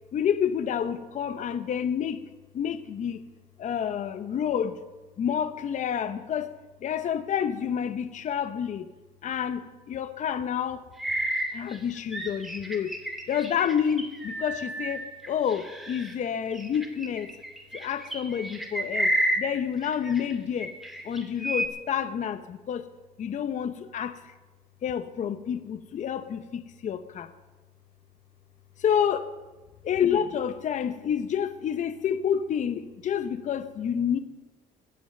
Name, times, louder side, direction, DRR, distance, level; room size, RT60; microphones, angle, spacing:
voice 1, 0.1-2.2 2.5-3.2 3.6-4.8 5.2-6.5 6.8-8.9 9.2-10.8 11.5-12.9 13.3-17.3 17.7-19.1 19.4-20.7 21.0-22.8 23.2-24.2 24.8-27.3 28.8-29.3 29.8-34.2, left 8 dB, 45° left, 12 dB, 0.7 m, -29 dB
sound 1, 11.0-16.1 16.5-20.3 20.6-21.7, equal, ahead, 2.5 m, -31 dB
15.0 x 11.0 x 6.5 m, 1.2 s
cardioid pair, 110°, 17 cm